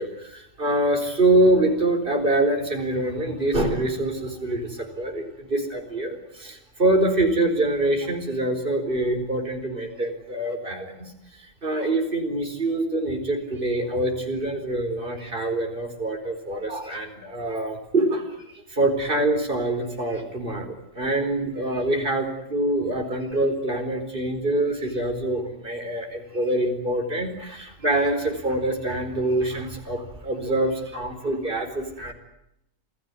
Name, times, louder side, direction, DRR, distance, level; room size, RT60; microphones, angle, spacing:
voice 1, 0.0-32.1, right 1 dB, 45° right, 4 dB, 4.7 m, -25 dB
28.0 x 18.0 x 9.7 m, 0.81 s
omnidirectional pair, 1.3 m